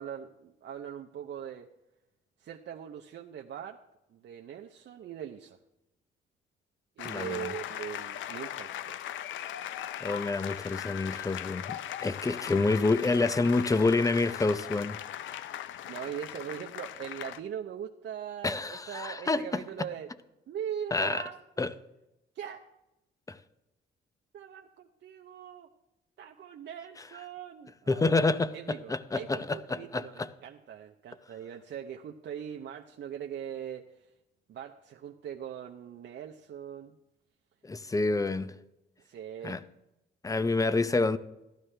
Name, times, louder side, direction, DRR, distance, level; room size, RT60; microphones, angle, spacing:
voice 1, 0.0-1.7 2.4-3.8 4.1-5.6 7.0-9.0 15.9-20.1 20.5-21.6 22.3-22.6 24.3-25.7 26.2-34.1 34.5-37.0 39.0-39.6, right 9 dB, 65° right, 0.7 m, -41 dB
sound 1, 7.0-17.4, left 11 dB, 75° left, 0.5 m, -39 dB
voice 2, 7.0-7.5 10.0-15.0 15.3-15.4 18.4-19.6 20.9-21.2 21.6-21.7 23.3-23.4 27.9-30.3 37.6-38.5 39.4-39.6 40.2-41.2, left 3 dB, 15° left, 0.6 m, -28 dB
14.5 x 12.5 x 3.3 m
cardioid pair, 90°, 20 cm